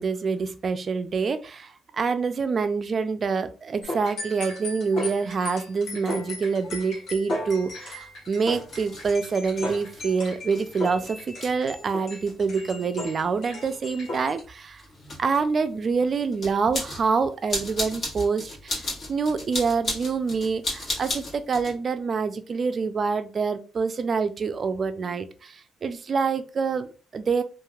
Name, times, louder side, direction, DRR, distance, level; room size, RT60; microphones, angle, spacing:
voice 1, 0.0-14.8 15.2-18.8 19.1-27.4, right 5 dB, 45° right, 10 dB, 0.4 m, -26 dB
sound 1, 3.8-14.4, left 1 dB, 75° left, 1.1 m, -36 dB
sound 2, 4.7-4.8 5.5-5.6 6.6-21.8, left 2 dB, 55° left, 1.5 m, -37 dB
3.0 x 2.5 x 2.3 m, 0.35 s
cardioid pair, 90°, 0 cm